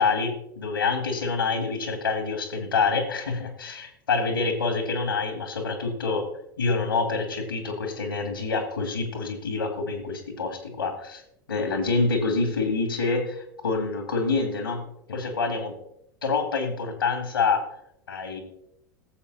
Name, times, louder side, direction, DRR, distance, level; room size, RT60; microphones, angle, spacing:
voice 1, 0.0-6.2 6.6-11.2 11.5-15.7 16.2-17.6 18.1-18.4, left 4 dB, 80° left, 6 dB, 2.3 m, -27 dB
17.5 x 7.7 x 4.1 m, 0.76 s
figure-of-eight pair, 80°, 12 cm